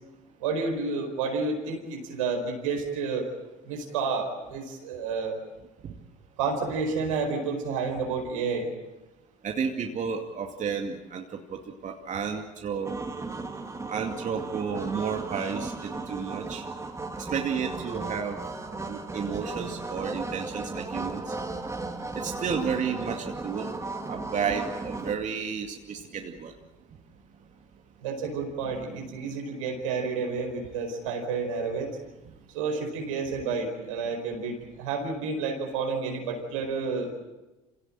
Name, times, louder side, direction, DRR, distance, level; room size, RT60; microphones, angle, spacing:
voice 1, 0.4-3.2 3.6-5.4 6.4-8.7 28.0-32.0 32.5-37.1, right 4 dB, 90° right, 3 dB, 4.8 m, -30 dB
voice 2, 9.4-13.0 13.9-16.6 17.2-18.4 18.9-21.3 22.2-23.7 24.1-26.5 28.9-29.0, right 6 dB, 50° right, 3 dB, 2.4 m, -32 dB
sound 1, 12.9-25.1, right 3 dB, 20° right, 3.2 m, -35 dB
26.5 x 17.5 x 8.9 m, 1.1 s
hypercardioid pair, 65°, 16 cm